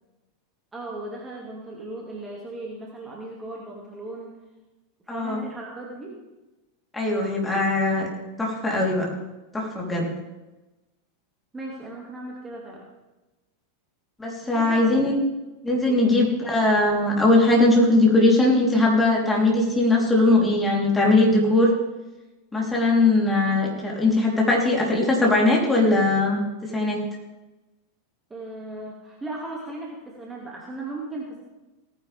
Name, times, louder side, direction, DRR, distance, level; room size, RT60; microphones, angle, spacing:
voice 1, 0.7-4.3 5.1-6.2 11.5-12.8 14.5-14.9 15.9-16.2 28.3-31.4, right 2 dB, 15° right, -3 dB, 2.6 m, -37 dB
voice 2, 5.1-5.4 6.9-8.1 8.4-9.1 9.5-10.1 14.2-15.1 15.6-21.7 22.5-27.0, left 2 dB, 10° left, -2 dB, 4.0 m, -20 dB
17.5 x 10.5 x 3.7 m, 1.1 s
figure-of-eight pair, 85°, 0 cm